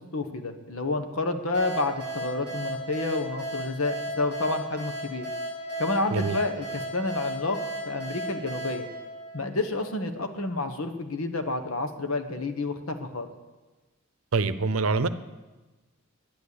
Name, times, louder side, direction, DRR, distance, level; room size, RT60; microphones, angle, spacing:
voice 1, 0.1-5.3 5.8-7.6 7.8-8.9 9.3-13.3, left 2 dB, 75° left, 7 dB, 1.3 m, -29 dB
sound 1, 1.5-10.0, right 1 dB, 50° left, 6.2 m, -35 dB
voice 2, 14.3-15.1, right 4 dB, 75° right, 13 dB, 0.7 m, -25 dB
11.0 x 10.5 x 8.4 m, 1.2 s
head